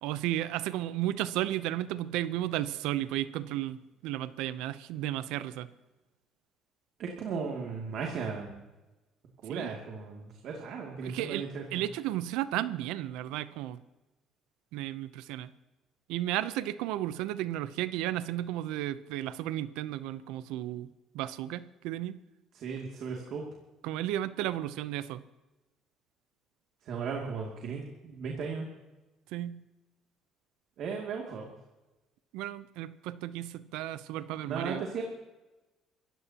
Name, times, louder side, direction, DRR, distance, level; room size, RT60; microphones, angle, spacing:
voice 1, 0.0-3.8 4.0-5.7 9.5-9.8 11.0-13.8 14.7-15.5 16.1-20.9 21.1-22.1 23.8-25.2 29.3-29.6 32.3-34.8, right 13 dB, 90° right, 15 dB, 0.7 m, -33 dB
voice 2, 7.0-8.6 9.4-11.6 22.5-23.4 26.9-28.7 30.8-31.5 34.4-35.0, right 5 dB, 65° right, 0 dB, 2.5 m, -36 dB
24.5 x 15.0 x 2.9 m, 1.1 s
cardioid pair, 110°, 0 cm